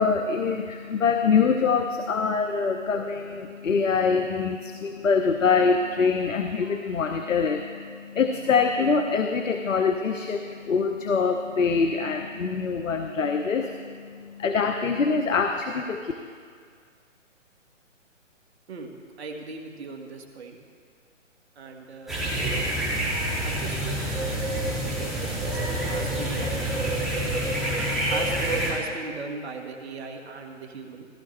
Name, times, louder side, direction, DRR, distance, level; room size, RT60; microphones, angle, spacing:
voice 1, 0.0-16.1, left 5 dB, 80° left, 5 dB, 0.9 m, -24 dB
voice 2, 19.2-20.6 21.6-22.7 23.4-24.5 25.0-26.6 27.6-31.1, right 4 dB, 55° right, 3 dB, 1.8 m, -38 dB
sound 1, 22.1-28.7, right 1 dB, ahead, 2.6 m, -27 dB
15.5 x 14.0 x 3.3 m, 2.1 s
hypercardioid pair, 145°, 38 cm